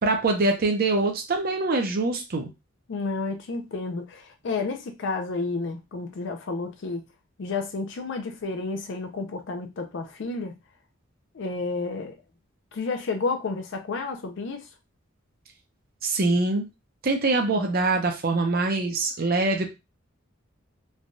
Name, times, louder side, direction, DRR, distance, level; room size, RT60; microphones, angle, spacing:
voice 1, 0.0-2.5 16.0-16.7 17.0-19.7, right 3 dB, 45° right, 0.5 m, -24 dB
voice 2, 2.9-7.1 7.4-10.5 11.3-12.2 12.7-14.7, left 3 dB, 60° left, 0.4 m, -31 dB
3.2 x 2.2 x 2.6 m
head